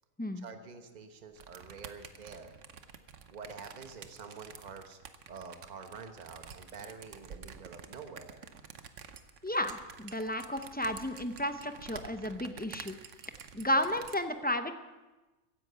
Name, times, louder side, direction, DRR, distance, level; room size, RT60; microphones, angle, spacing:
voice 1, 0.4-2.5 3.3-5.0 5.3-8.5, right 5 dB, 35° right, 6 dB, 1.2 m, -47 dB
sound 1, 1.4-14.2, right 7 dB, 65° right, 1.2 m, -49 dB
voice 2, 9.4-13.0 13.5-14.7, left 1 dB, 15° left, 8 dB, 0.4 m, -32 dB
16.0 x 10.5 x 6.9 m, 1.2 s
omnidirectional pair, 1.4 m